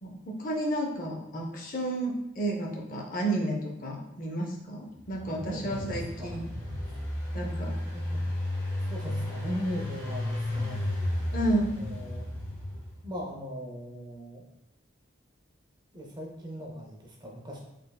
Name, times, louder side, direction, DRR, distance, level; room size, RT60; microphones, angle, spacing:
voice 1, 0.0-6.5 7.3-7.7 11.3-11.8, right 1 dB, 40° left, 0 dB, 0.6 m, -31 dB
Engine, 5.0-13.1, left 1 dB, 15° left, 1.1 m, -33 dB
voice 2, 5.2-6.4 6.8-7.0 7.3-7.5 7.9-8.2 8.7-11.0 11.8-12.3 13.0-14.4 15.9-17.6, equal, 20° right, -1 dB, 0.5 m, -39 dB
4.3 x 3.3 x 2.2 m, 0.88 s
head